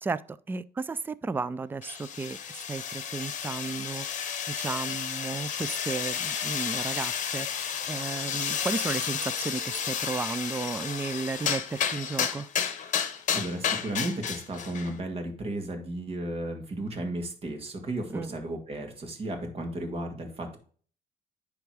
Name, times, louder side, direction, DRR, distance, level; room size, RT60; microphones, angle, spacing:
voice 1, 0.0-4.1 4.5-12.5 18.1-18.3, right 4 dB, 10° right, 0.3 m, -34 dB
sound 1, 1.8-14.9, left 8 dB, 45° left, 1.1 m, -32 dB
voice 2, 13.0-20.6, right 1 dB, 35° right, 2.0 m, -34 dB
10.0 x 3.5 x 4.7 m
cardioid pair, 110°, 17 cm